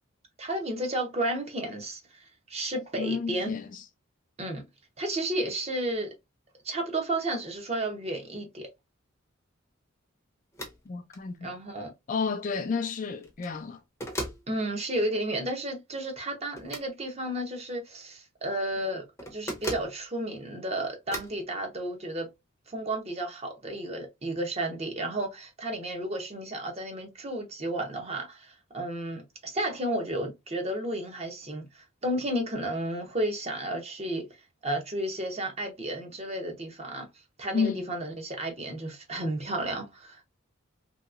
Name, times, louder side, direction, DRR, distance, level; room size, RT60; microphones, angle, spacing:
voice 1, 0.4-3.5 4.4-4.6 5.0-6.1 6.6-8.7 11.4-11.9 14.5-22.3 22.7-34.3 34.6-37.1 37.4-40.2, right 1 dB, 30° right, 0.8 m, -32 dB
voice 2, 3.0-3.8 10.9-11.5 12.1-13.8 37.5-37.8, left 5 dB, 40° left, 0.3 m, -31 dB
sound 1, 10.5-10.8 11.1-11.2 13.2-13.6 14.0-14.4 16.6-16.9 19.2-19.9 21.1-21.4, equal, 15° left, 0.7 m, -36 dB
3.0 x 2.8 x 2.4 m
head